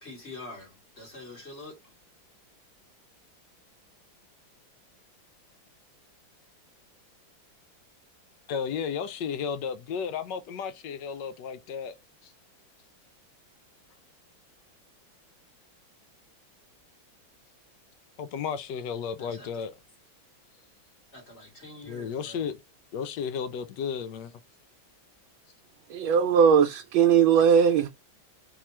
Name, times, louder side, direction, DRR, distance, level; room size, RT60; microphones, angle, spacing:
voice 1, 0.0-1.9 19.2-19.6 21.1-22.4, left 2 dB, 35° left, 1.7 m, -45 dB
voice 2, 8.5-12.0 12.2-12.3 18.2-19.7 21.9-22.6 22.9-24.3, left 7 dB, 75° left, 1.1 m, -33 dB
voice 3, 25.9-27.9, right 7 dB, 80° right, 1.3 m, -19 dB
3.6 x 2.7 x 4.2 m
omnidirectional pair, 2.2 m